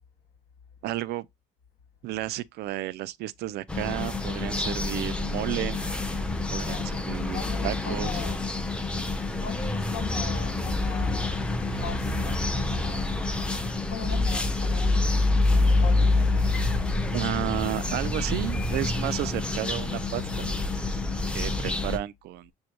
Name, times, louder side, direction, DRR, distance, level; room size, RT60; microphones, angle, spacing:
voice 1, 0.8-1.3 2.0-5.8 6.5-8.2 17.1-20.5 21.3-22.5, right 15 dB, 75° right, 0.5 m, -32 dB
sound 1, 3.7-22.0, left 2 dB, 5° left, 0.8 m, -27 dB
voice 2, 6.6-8.5 9.4-11.4 11.8-13.1 13.9-15.3 15.6-16.3, left 7 dB, 65° left, 2.2 m, -40 dB
6.4 x 2.2 x 3.0 m
cardioid pair, 110°, 17 cm